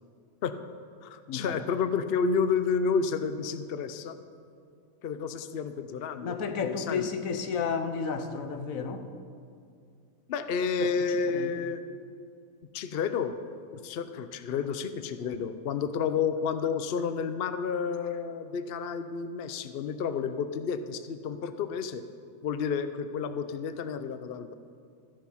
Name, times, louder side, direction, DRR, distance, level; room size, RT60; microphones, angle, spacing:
voice 1, 1.0-4.2 5.0-7.1 10.3-11.8 12.7-13.4 13.7-22.0 22.4-24.5, left 6 dB, 55° left, 10 dB, 0.7 m, -30 dB
voice 2, 6.2-9.1 10.8-10.9 11.3-11.6, left 6 dB, 70° left, 8 dB, 1.3 m, -32 dB
14.0 x 10.5 x 5.6 m, 2.3 s
omnidirectional pair, 1.5 m